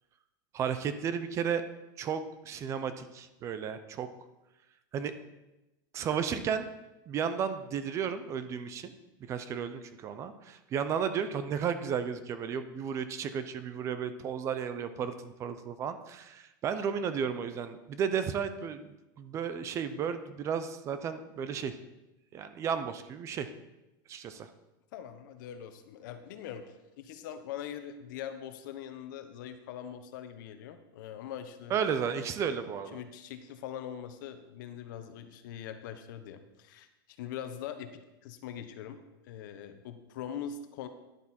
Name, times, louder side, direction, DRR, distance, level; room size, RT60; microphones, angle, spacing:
voice 1, 0.5-1.6 2.0-4.1 4.9-5.1 5.9-6.7 7.1-8.9 9.3-18.9 19.2-21.8 22.3-23.5 24.1-24.5 31.7-33.0, right 7 dB, 25° right, 11 dB, 0.6 m, -33 dB
voice 2, 24.9-31.7 32.9-36.9 37.2-39.0 39.3-40.9, left 9 dB, 60° left, 9 dB, 1.1 m, -42 dB
11.0 x 8.4 x 4.3 m, 0.98 s
supercardioid pair, 155°, 12 cm